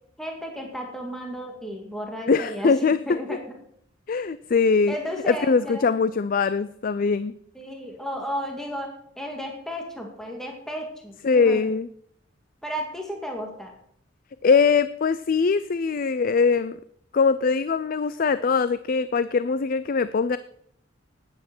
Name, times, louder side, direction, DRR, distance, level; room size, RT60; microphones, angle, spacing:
voice 1, 0.2-3.6 4.9-5.8 7.6-8.9 9.2-11.6 12.6-13.7, equal, 5° left, 1 dB, 2.0 m, -33 dB
voice 2, 2.3-3.2 4.1-4.9 5.3-7.3 11.2-11.9 14.4-16.8 17.1-20.4, left 5 dB, 45° left, 14 dB, 0.4 m, -22 dB
12.5 x 9.7 x 6.1 m, 0.68 s
head